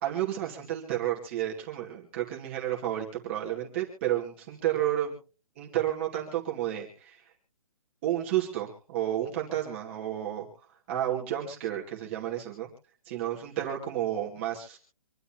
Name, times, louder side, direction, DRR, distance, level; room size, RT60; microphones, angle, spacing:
voice 1, 0.0-5.1 5.6-7.3 8.0-12.7 13.1-14.8, right 12 dB, 20° right, -3 dB, 2.4 m, -31 dB
26.5 x 11.0 x 2.9 m, 0.37 s
hypercardioid pair, 175°, 18 cm